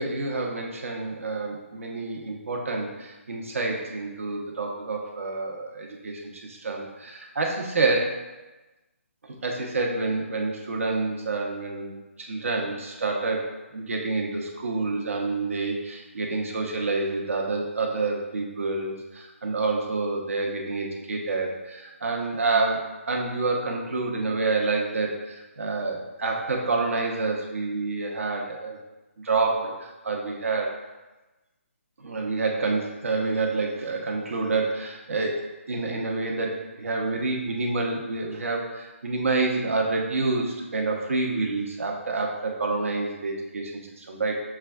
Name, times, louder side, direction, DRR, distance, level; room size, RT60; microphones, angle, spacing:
voice 1, 0.0-8.1 9.4-28.8 29.2-30.8 32.0-35.4 35.7-43.7 44.0-44.4, right 3 dB, 75° right, 0 dB, 1.0 m, -28 dB
6.5 x 2.4 x 3.5 m, 1.1 s
hypercardioid pair, 170°, 7 cm